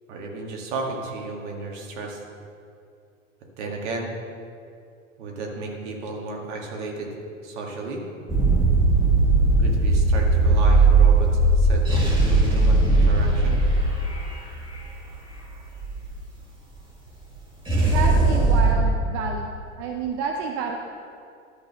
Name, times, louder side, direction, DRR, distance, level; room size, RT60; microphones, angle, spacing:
voice 1, 0.1-2.2 3.6-4.1 5.2-7.1 7.4-8.0 9.6-13.6, right 3 dB, 60° right, 0 dB, 1.9 m, -33 dB
sound 1, 8.3-16.1 17.7-18.7, right 2 dB, 10° right, 1.9 m, -19 dB
voice 2, 17.8-19.5 19.8-20.8, right 5 dB, 40° right, 3 dB, 0.7 m, -29 dB
12.0 x 4.1 x 6.2 m, 2.4 s
hypercardioid pair, 95°, 40 cm